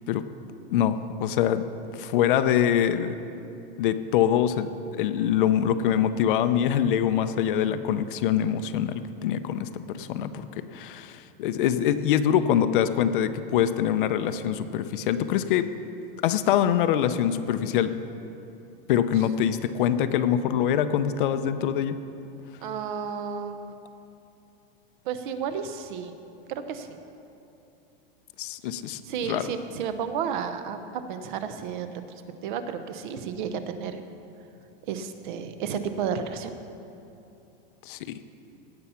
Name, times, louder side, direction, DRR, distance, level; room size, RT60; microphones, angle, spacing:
voice 1, 0.7-1.6 2.0-3.2 3.8-4.7 4.9-10.5 10.7-15.7 16.2-17.9 18.9-22.0 28.4-29.0 29.3-29.5 37.9-38.0, left 10 dB, 60° left, 10 dB, 0.6 m, -24 dB
voice 2, 22.6-23.7 25.0-26.1 26.5-27.0 29.0-31.9 32.4-34.0 34.9-36.5, right 7 dB, 55° right, 9 dB, 0.9 m, -32 dB
17.5 x 7.0 x 5.7 m, 2.8 s
supercardioid pair, 175°, 30 cm